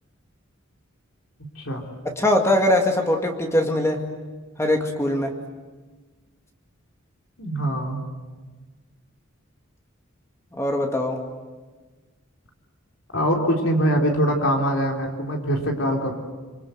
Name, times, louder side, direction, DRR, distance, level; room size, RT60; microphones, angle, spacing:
voice 1, 2.0-4.0 4.6-5.3 10.5-11.2, left 1 dB, 15° left, 2 dB, 2.2 m, -21 dB
voice 2, 7.4-8.0 13.1-16.1, equal, 70° left, 1 dB, 3.8 m, -23 dB
26.5 x 25.5 x 8.0 m, 1.3 s
head